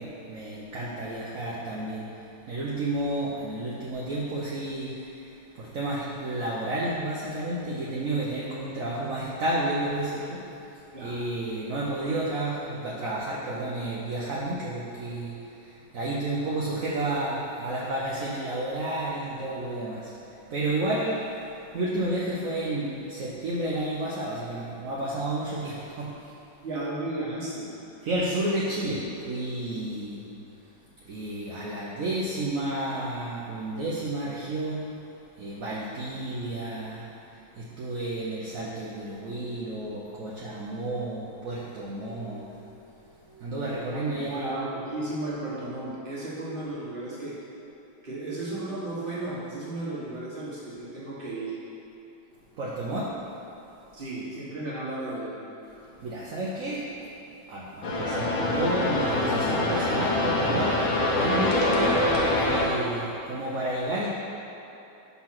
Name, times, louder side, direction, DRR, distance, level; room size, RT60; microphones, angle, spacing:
voice 1, 0.0-10.4 11.0-20.1 20.5-21.2 21.7-26.3 28.0-30.3 31.1-34.9 35.4-44.5 52.6-53.1 55.7-57.1 57.4-64.1, right 1 dB, 60° right, -5 dB, 0.9 m, -31 dB
voice 2, 26.6-27.7 43.5-47.4 48.0-51.5 53.9-55.4, right 2 dB, 30° right, -7 dB, 1.4 m, -34 dB
sound 1, 57.8-62.7, left 2 dB, 85° left, 1.7 m, -25 dB
5.9 x 4.3 x 5.8 m, 2.9 s
omnidirectional pair, 2.0 m